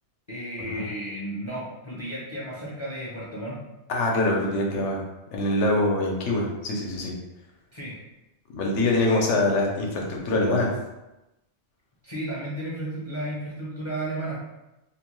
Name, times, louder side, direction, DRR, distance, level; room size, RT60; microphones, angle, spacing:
voice 1, 0.3-3.6 7.7-7.9 12.0-14.4, right 1 dB, 35° left, -8 dB, 0.5 m, -33 dB
voice 2, 3.9-5.0 5.3-7.1 8.5-10.7, left 2 dB, 80° left, 0 dB, 0.9 m, -24 dB
2.6 x 2.2 x 3.0 m, 0.97 s
omnidirectional pair, 1.2 m